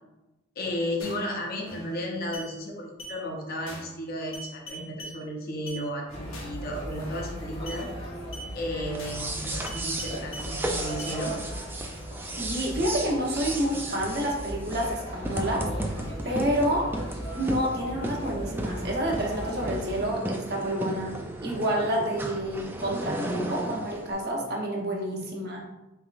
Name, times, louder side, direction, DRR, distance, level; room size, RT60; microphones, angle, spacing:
voice 1, 0.6-7.9 8.5-11.4 25.1-25.2, equal, 45° left, 0 dB, 0.7 m, -34 dB
sound 1, 1.0-1.3 1.7-2.0 2.3-2.5 3.0-3.2 3.7-4.0 4.3-5.2 5.7-5.8 6.3-6.6 7.0-7.3 7.7-7.8 8.3-8.5 9.0-9.3 9.7-10.5 11.0-11.2, right 1 dB, 75° left, 1.0 m, -41 dB
sound 2, 6.1-20.0, equal, 30° left, 1.0 m, -38 dB
sound 3, 8.9-24.1, right 1 dB, 10° right, 0.3 m, -35 dB
voice 2, 12.4-16.9 17.3-21.1 21.4-25.6, right 1 dB, 50° right, -1 dB, 0.8 m, -29 dB
4.2 x 3.6 x 2.4 m, 1.0 s
head